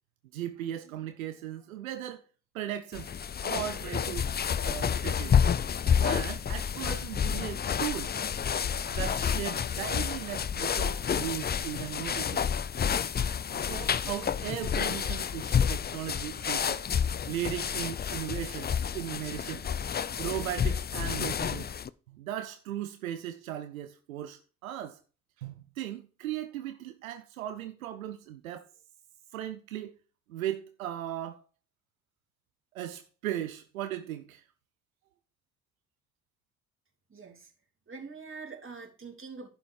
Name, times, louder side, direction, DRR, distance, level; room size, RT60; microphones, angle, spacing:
voice 1, 0.3-2.2 2.5-3.1 3.4-4.3 4.6-5.3 6.0-8.1 8.6-12.4 13.5-16.8 17.3-19.6 20.2-21.7 22.1-25.0 25.4-28.7 29.3-29.9 30.3-31.4 32.7-34.4, right 12 dB, 85° right, 0.6 m, -37 dB
sound 1, 2.9-21.9, left 7 dB, 25° left, 0.5 m, -29 dB
voice 2, 37.1-37.5 37.9-39.5, right 4 dB, 30° right, 3.1 m, -44 dB
11.0 x 5.8 x 4.8 m
figure-of-eight pair, 40°, 40 cm